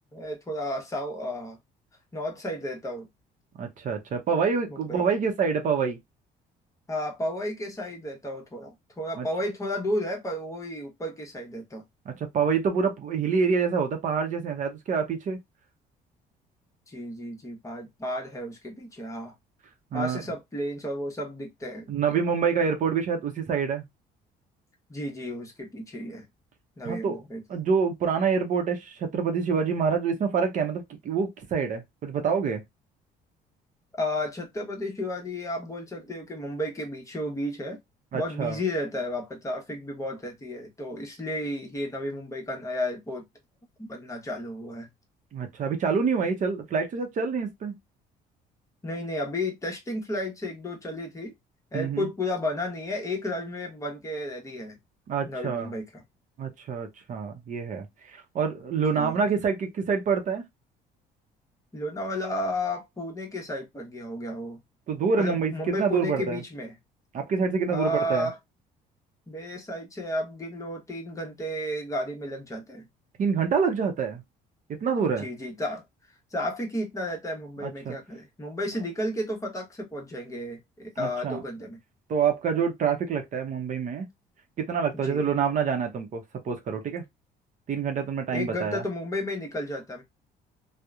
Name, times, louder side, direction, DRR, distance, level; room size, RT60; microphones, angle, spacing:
voice 1, 0.1-1.6 2.1-3.1 4.7-5.0 6.9-11.8 16.9-19.3 19.9-21.9 24.9-26.2 26.8-27.4 33.9-37.8 38.1-43.2 43.8-44.9 48.8-51.3 51.7-54.8 55.3-56.0 58.9-59.2 61.7-64.6 65.2-66.7 67.7-68.4 69.3-72.9 75.2-75.8 76.3-81.8 85.0-85.3 88.3-90.0, left 1 dB, 20° left, 0.9 m, -33 dB
voice 2, 3.6-6.0 9.1-9.3 12.1-15.4 19.9-20.2 21.9-23.8 26.8-27.2 27.5-32.6 38.1-38.6 45.3-47.8 51.7-52.1 55.1-55.7 56.4-60.4 64.9-65.5 65.8-66.4 67.1-68.3 73.2-74.2 74.8-75.3 77.6-78.0 81.0-81.4 82.1-84.1 84.6-87.0 87.7-88.8, right 6 dB, 50° right, 0.6 m, -27 dB
2.8 x 2.1 x 2.3 m
cardioid pair, 110°, 17 cm